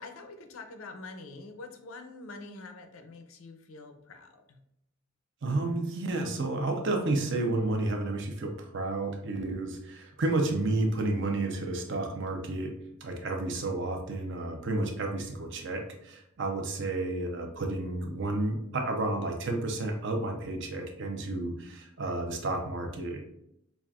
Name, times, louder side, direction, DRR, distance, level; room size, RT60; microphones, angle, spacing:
voice 1, 0.0-4.7, left 3 dB, 80° left, 6 dB, 0.5 m, -45 dB
voice 2, 5.4-12.7 13.0-23.3, right 2 dB, 60° right, 4 dB, 0.6 m, -31 dB
5.4 x 2.4 x 2.3 m, 0.81 s
head